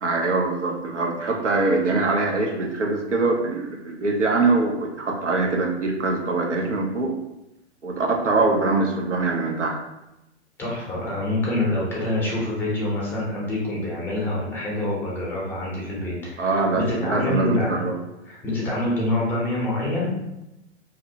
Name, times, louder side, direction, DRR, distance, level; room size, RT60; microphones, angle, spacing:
voice 1, 0.0-7.1 7.8-9.8 16.4-17.9, right 3 dB, 90° right, 1 dB, 0.6 m, -23 dB
voice 2, 10.6-17.8 18.3-20.1, left 1 dB, 5° left, -5 dB, 0.5 m, -26 dB
2.7 x 2.0 x 2.6 m, 0.92 s
figure-of-eight pair, 115°, 35 cm